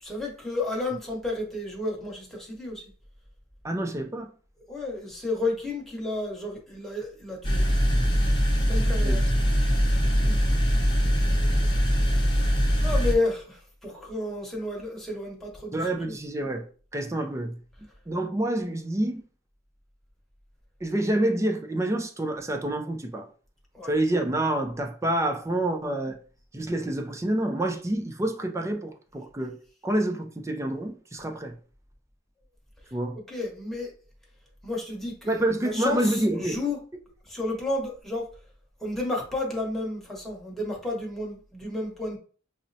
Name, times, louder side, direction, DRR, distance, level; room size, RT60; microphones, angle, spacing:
voice 1, 0.0-2.8 4.7-7.6 8.7-9.3 11.5-11.7 12.8-16.2 23.7-24.0 33.2-33.9 34.6-36.8 37.3-38.3 38.8-42.2, left 2 dB, ahead, 1.0 m, -31 dB
voice 2, 3.6-4.3 9.0-9.2 10.3-10.6 15.7-16.7 16.9-17.6 18.1-19.2 20.8-23.3 23.9-26.2 26.5-29.6 29.8-31.6 32.9-33.2 35.3-36.6, right 1 dB, 15° right, 0.4 m, -28 dB
sound 1, 7.4-13.2, equal, 25° left, 0.7 m, -22 dB
5.9 x 2.0 x 2.7 m
head